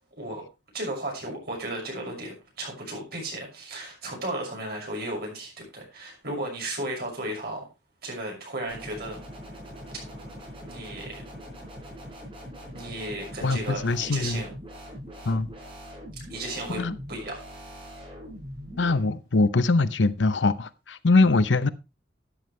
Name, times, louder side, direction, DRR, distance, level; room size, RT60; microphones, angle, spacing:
voice 1, 0.7-7.6 8.0-9.2 10.6-11.2 12.7-14.5 16.3-16.8 17.1-17.4, right 1 dB, 60° right, 6.3 m, -34 dB
sound 1, 8.7-19.0, equal, 30° right, 4.0 m, -42 dB
voice 2, 13.4-14.4 15.3-15.5 16.7-16.9 18.8-21.7, left 3 dB, 85° left, 0.8 m, -22 dB
12.5 x 9.5 x 3.3 m
head